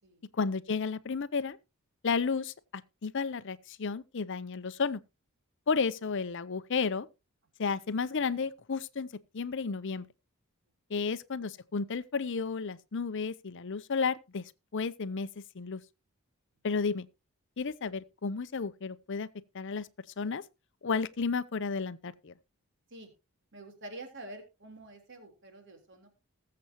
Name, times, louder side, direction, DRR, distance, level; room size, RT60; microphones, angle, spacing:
voice 1, 0.3-1.6 2.0-5.0 5.7-7.1 7.6-9.1 9.3-10.1 10.9-14.4 14.7-15.3 15.5-15.8 16.6-17.1 17.6-19.3 19.5-19.9 20.2-20.4 20.8-22.3, left 5 dB, 55° left, 0.6 m, -32 dB
voice 2, 23.5-26.1, right 2 dB, 55° right, 3.6 m, -48 dB
20.0 x 7.7 x 2.9 m
head